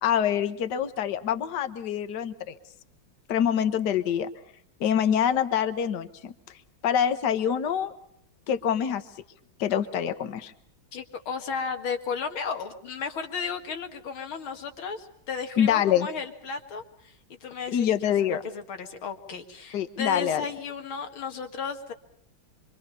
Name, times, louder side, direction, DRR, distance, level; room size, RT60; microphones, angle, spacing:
voice 1, 0.0-2.6 3.3-4.3 4.8-6.3 6.8-7.9 8.5-9.0 9.6-10.5 15.6-16.1 17.7-18.4 19.7-20.4, left 9 dB, 60° left, 10 dB, 1.7 m, -25 dB
voice 2, 10.9-21.9, left 5 dB, 85° left, 6 dB, 2.7 m, -34 dB
26.0 x 24.5 x 5.6 m, 0.68 s
omnidirectional pair, 2.2 m